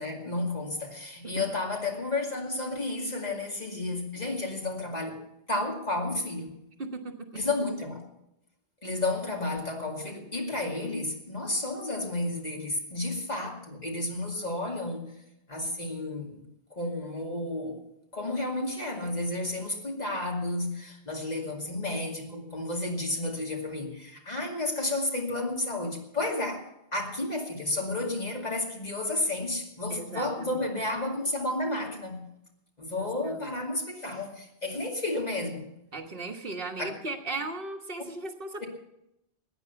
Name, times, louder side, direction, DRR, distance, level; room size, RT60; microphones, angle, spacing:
voice 1, 0.0-5.2 5.5-6.5 7.3-8.0 8.8-15.1 15.5-16.4 16.7-17.8 18.1-32.2 32.8-35.7 36.8-36.9 38.6-38.7, left 2 dB, 40° left, 0 dB, 2.5 m, -32 dB
voice 2, 6.8-7.4 29.9-30.6 33.0-33.5 35.9-38.6, right 3 dB, 55° right, 4 dB, 1.5 m, -37 dB
16.5 x 9.6 x 6.9 m, 0.86 s
omnidirectional pair, 1.1 m